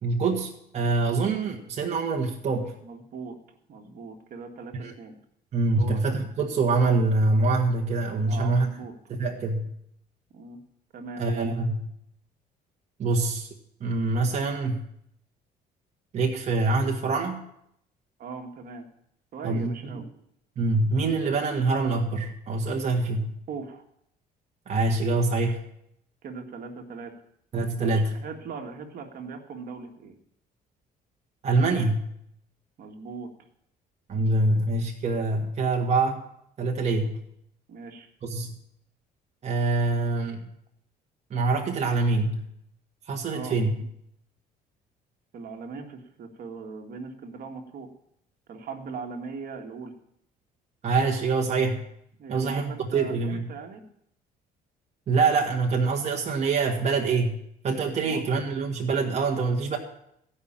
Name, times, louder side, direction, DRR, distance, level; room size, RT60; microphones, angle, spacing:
voice 1, 0.0-2.7 4.7-4.9 5.5-8.7 9.1-9.7 11.2-11.9 13.0-13.5 13.8-14.8 16.1-17.4 19.4-20.0 20.6-23.3 24.7-25.6 27.5-28.2 31.4-32.1 34.1-36.2 36.6-37.2 38.2-38.5 39.4-40.5 41.3-42.4 43.1-43.7 50.8-51.8 52.3-53.5 55.1-57.4 57.6-59.8, right 3 dB, 40° right, 2 dB, 1.6 m, -25 dB
voice 2, 2.8-3.4 3.7-5.2 5.8-6.0 8.2-8.9 10.3-10.6 10.9-11.2 18.2-18.9 19.3-20.1 23.5-23.8 26.2-27.1 27.8-30.1 32.8-33.3 37.7-38.1 43.3-43.6 45.3-47.9 48.5-49.9 52.2-53.8 58.0-58.2, right 5 dB, 60° right, 5 dB, 1.9 m, -39 dB
16.0 x 5.7 x 8.8 m, 0.73 s
cardioid pair, 110°, 17 cm